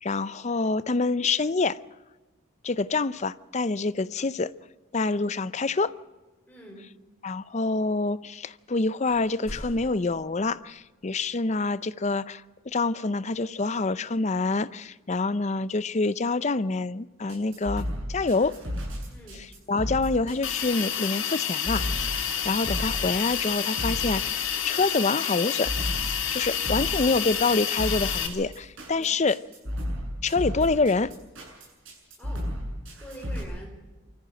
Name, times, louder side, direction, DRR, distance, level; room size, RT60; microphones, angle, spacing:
voice 1, 0.0-1.8 2.6-4.5 4.9-5.9 7.2-18.6 19.7-25.7 26.3-29.4 30.2-31.1, left 3 dB, 35° left, 0.5 m, -26 dB
voice 2, 6.5-6.9 19.1-19.4 26.3-26.6 28.9-29.1 32.2-32.5 33.0-33.8, equal, 10° left, 5.0 m, -45 dB
sound 1, 8.6-8.8 9.0-11.1, left 1 dB, 80° left, 2.9 m, -44 dB
sound 2, 17.3-33.4, equal, 65° right, 8.0 m, -33 dB
Hiss, 20.4-28.3, left 8 dB, 65° left, 2.4 m, -29 dB
24.0 x 14.0 x 7.8 m
head